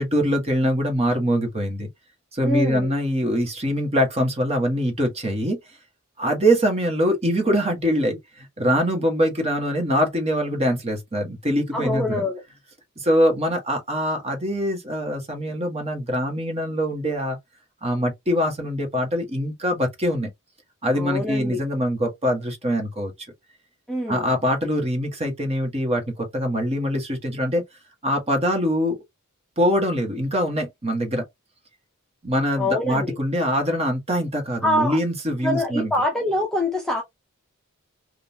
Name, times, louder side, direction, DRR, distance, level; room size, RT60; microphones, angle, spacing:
voice 1, 0.0-1.9 2.3-5.6 6.2-12.2 13.0-17.4 17.8-20.3 20.8-23.1 24.1-27.6 28.0-29.0 29.6-31.2 32.2-35.9, equal, 30° right, 1.3 m, -23 dB
voice 2, 2.4-2.9 11.7-12.4 20.9-21.6 23.9-24.2 32.6-33.1 34.6-35.0 35.4-37.0, left 1 dB, ahead, 0.6 m, -24 dB
3.6 x 2.5 x 2.7 m
head